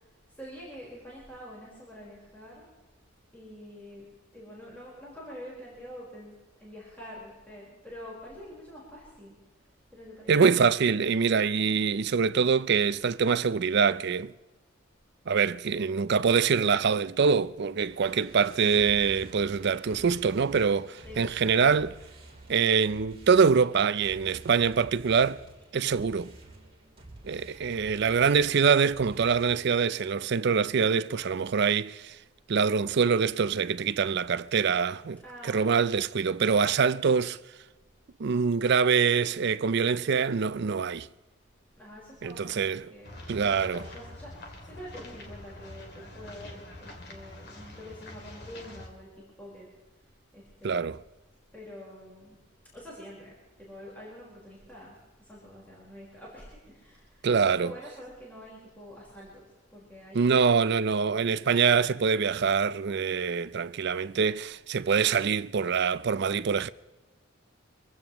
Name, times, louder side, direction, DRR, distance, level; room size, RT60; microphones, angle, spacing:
voice 1, 0.0-2.7 3.3-9.6 9.9-10.5 18.1-18.2 21.0-21.3 35.2-36.0 41.8-49.7 50.3-50.9 51.5-52.4 52.7-59.4 59.7-60.6, equal, 10° left, 4.4 m, -46 dB
voice 2, 10.3-14.3 15.3-22.0 22.5-25.4 25.7-26.3 27.2-32.2 32.5-37.4 38.2-41.1 42.2-42.9 43.3-43.8 50.6-51.0 57.2-57.7 60.1-66.7, right 6 dB, 55° right, 0.4 m, -24 dB
sound 1, 17.4-29.8, right 2 dB, 25° right, 3.5 m, -50 dB
sound 2, 43.0-48.9, left 1 dB, 50° left, 2.4 m, -45 dB
25.0 x 15.5 x 3.0 m
head